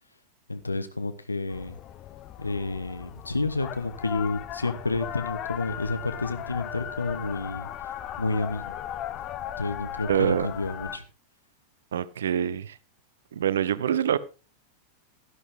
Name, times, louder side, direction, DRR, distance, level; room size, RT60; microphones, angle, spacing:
voice 1, 0.5-1.8 2.4-7.7 8.2-8.8 9.6-11.0, left 3 dB, 80° left, 1.1 m, -30 dB
sound 1, 1.5-11.0, left 11 dB, 35° left, 0.7 m, -37 dB
voice 2, 10.1-10.5 11.9-12.8 13.3-14.2, right 9 dB, 65° right, 0.6 m, -25 dB
11.5 x 11.0 x 3.6 m
figure-of-eight pair, 90°, 0 cm